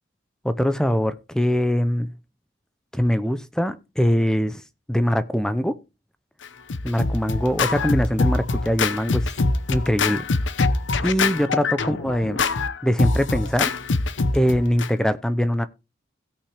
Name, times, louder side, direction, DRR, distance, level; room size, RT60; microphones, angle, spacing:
voice 1, 0.4-2.1 2.9-4.6 4.9-5.8 6.8-9.3 9.7-10.3 11.0-12.4 12.8-13.7 14.3-15.7, equal, 5° left, 0.5 m, -22 dB
Scratching (performance technique), 6.4-14.9, left 3 dB, 75° left, 0.7 m, -24 dB
17.0 x 5.8 x 3.3 m
head